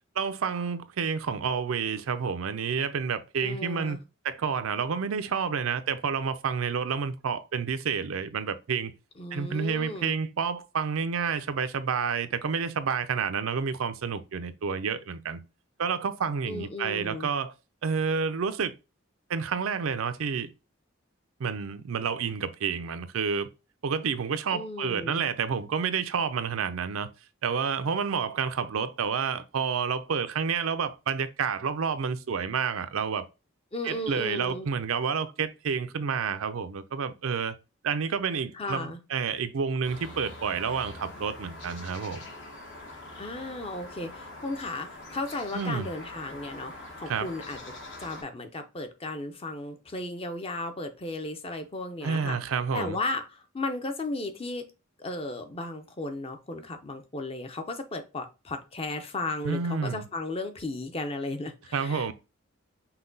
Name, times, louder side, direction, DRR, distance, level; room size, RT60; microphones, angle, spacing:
voice 1, 0.2-4.0 4.2-8.9 9.3-15.4 15.8-17.5 17.8-18.7 19.3-20.5 21.4-23.5 23.8-27.1 27.4-33.3 33.8-37.5 37.8-42.2 45.5-45.9 47.1-47.3 52.0-53.0 59.4-60.0 61.7-62.1, right 6 dB, 75° right, 0.5 m, -29 dB
voice 2, 3.4-4.0 9.2-10.2 16.5-17.3 24.5-25.2 33.7-34.7 38.5-39.0 43.2-47.6 48.0-52.4 52.7-54.7 55.0-62.1, left 2 dB, 25° left, 0.6 m, -35 dB
sound 1, 39.8-48.2, left 2 dB, 60° left, 1.2 m, -44 dB
5.7 x 2.2 x 3.9 m
head